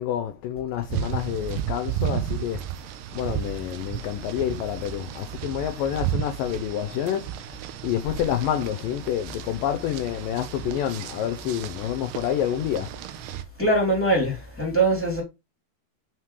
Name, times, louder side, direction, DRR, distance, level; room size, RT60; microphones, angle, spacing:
voice 1, 0.0-2.6 3.1-12.9, left 10 dB, 80° left, 2.0 m, -28 dB
sound 1, 0.9-13.4, right 11 dB, 85° right, 2.8 m, -33 dB
voice 2, 13.6-15.2, right 2 dB, 5° left, 2.2 m, -22 dB
9.2 x 6.0 x 3.2 m
omnidirectional pair, 4.6 m